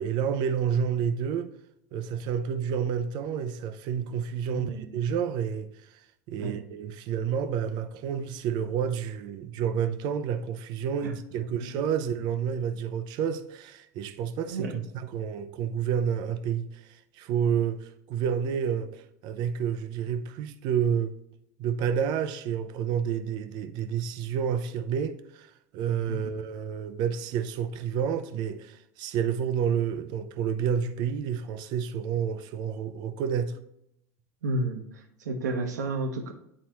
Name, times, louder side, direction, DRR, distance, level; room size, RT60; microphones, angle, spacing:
voice 1, 0.0-1.5 1.9-5.7 6.3-21.2 21.6-33.6, right 8 dB, 55° right, 0.7 m, -29 dB
voice 2, 4.5-5.0 6.4-6.6 11.0-11.1 11.6-11.7 14.5-14.8 26.1-26.3 34.4-36.3, right 2 dB, 80° right, 1.1 m, -32 dB
9.5 x 4.2 x 3.0 m
hypercardioid pair, 85°, 9 cm